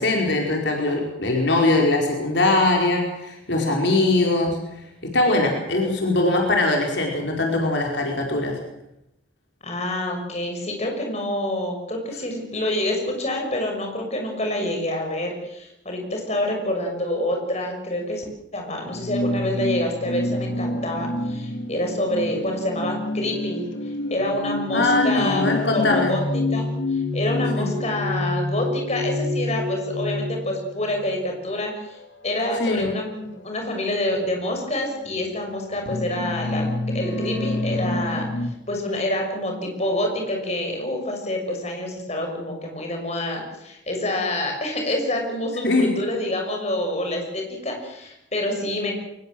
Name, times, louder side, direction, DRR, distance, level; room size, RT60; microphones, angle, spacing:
voice 1, 0.0-4.6 5.0-8.6 24.7-26.1 27.6-27.7 32.6-32.9 45.6-45.9, left 2 dB, 65° left, 1 dB, 4.6 m, -21 dB
voice 2, 9.6-18.2 18.5-23.7 24.1-25.4 25.7-26.2 26.5-32.0 32.2-36.7 36.9-48.9, left 1 dB, 35° left, 2 dB, 6.3 m, -27 dB
sound 1, 18.9-31.1 32.0-32.3 33.4-33.5 34.1-34.3 35.0-38.5, left 2 dB, 80° left, 2.9 m, -28 dB
24.0 x 20.5 x 7.8 m, 0.85 s
head